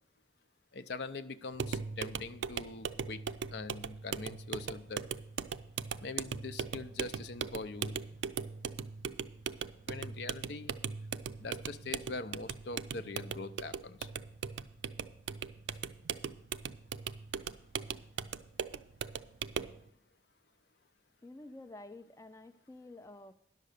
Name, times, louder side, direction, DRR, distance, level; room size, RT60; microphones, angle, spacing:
voice 1, 0.7-3.2 3.5-5.0 6.0-8.0 9.9-10.7 11.4-14.0, left 3 dB, 70° left, 11 dB, 0.6 m, -42 dB
sound 1, 1.5-19.8, right 6 dB, 90° right, 0.4 m, -39 dB
voice 2, 21.2-23.3, left 2 dB, 15° left, 9 dB, 0.3 m, -50 dB
11.0 x 6.6 x 6.6 m, 0.72 s
head